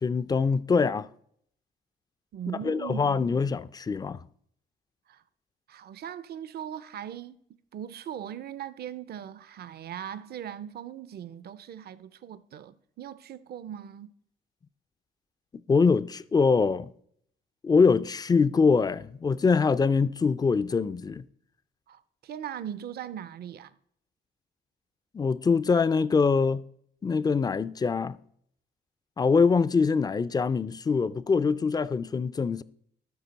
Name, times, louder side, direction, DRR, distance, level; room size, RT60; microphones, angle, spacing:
voice 1, 0.0-1.1 2.6-4.2 15.7-16.9 17.6-21.2 25.1-26.6 27.0-28.2 29.2-32.6, left 5 dB, 20° left, 0.3 m, -24 dB
voice 2, 2.3-3.4 5.1-5.2 5.7-7.4 7.7-14.1 21.9-23.7, right 9 dB, 55° right, 0.5 m, -39 dB
13.0 x 5.0 x 4.0 m
cardioid pair, 90°, 20 cm